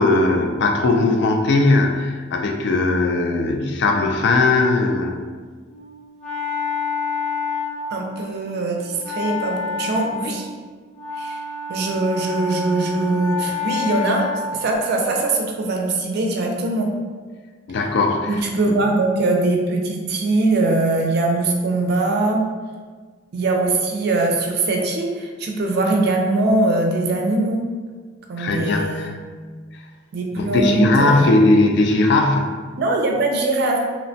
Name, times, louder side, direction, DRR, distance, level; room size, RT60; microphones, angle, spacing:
voice 1, 0.0-5.2 17.7-18.4 28.4-29.2 30.4-32.6, left 2 dB, 60° left, 3 dB, 0.3 m, -18 dB
Wind instrument woodwind instrument, 5.7-14.8, left 5 dB, 35° left, 0.7 m, -29 dB
voice 2, 7.9-10.5 11.1-11.4 11.7-14.3 14.5-16.9 18.3-22.4 23.3-27.6 28.3-29.1 30.1-31.3 32.8-33.8, right 2 dB, 55° right, 2 dB, 0.4 m, -21 dB
2.9 x 2.1 x 2.6 m, 1.5 s
head